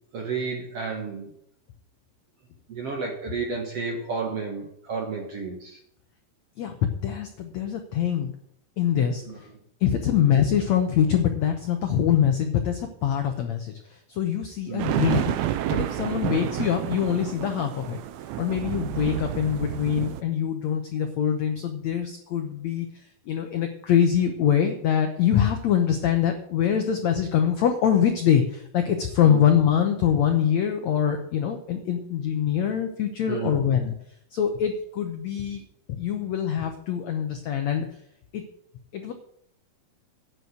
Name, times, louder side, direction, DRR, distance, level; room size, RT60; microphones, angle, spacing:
voice 1, 0.1-1.3 2.7-5.8 9.2-9.4 10.1-10.2 14.7-15.0 16.0-16.3 29.2-29.5 33.3-33.6, right 5 dB, 60° right, 1 dB, 1.6 m, -32 dB
voice 2, 6.6-8.3 8.8-9.2 9.8-18.0 18.4-22.9 23.3-33.9 34.3-35.6 35.9-37.9 38.3-38.4 38.9-39.1, left 9 dB, 90° left, 5 dB, 1.5 m, -24 dB
sound 1, 14.8-20.2, right 12 dB, 80° right, 2.6 m, -29 dB
9.8 x 6.3 x 7.9 m, 0.71 s
omnidirectional pair, 4.5 m